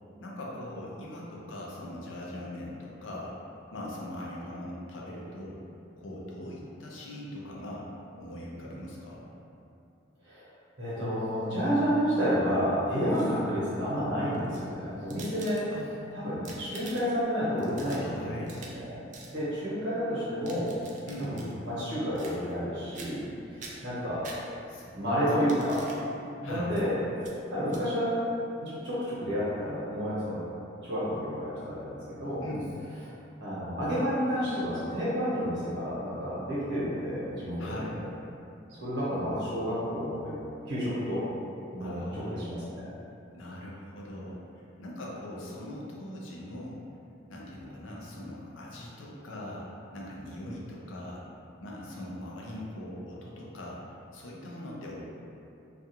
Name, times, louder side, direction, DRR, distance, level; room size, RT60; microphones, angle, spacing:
voice 1, 0.2-3.4 3.7-5.6 6.0-7.9 8.1-9.3 15.7-15.9 17.9-18.6 21.1-21.5 24.7-25.0 26.4-26.8 32.4-32.7 37.6-38.0 41.8-42.4 43.3-46.8 47.3-51.2 51.6-55.0, left 1 dB, 80° left, -4 dB, 0.5 m, -41 dB
voice 2, 10.8-15.6 16.1-19.0 19.3-20.8 21.2-21.4 21.6-24.2 25.0-25.8 26.4-27.0 27.5-28.1 28.6-30.4 30.8-32.5 33.4-38.0 38.7-40.3 40.7-41.2 41.7-42.9, equal, 65° right, -9 dB, 0.9 m, -30 dB
sound 1, 12.9-13.6 14.3-15.9 16.3-17.2 17.6-18.8 19.1-19.3 20.2-21.5 22.1-22.7 22.9-23.3 23.6-24.8 25.3-26.0 26.7-26.8 27.2-27.3 27.7-27.8, right 3 dB, 40° right, 0.3 m, -47 dB
2.4 x 2.3 x 2.8 m, 2.7 s
head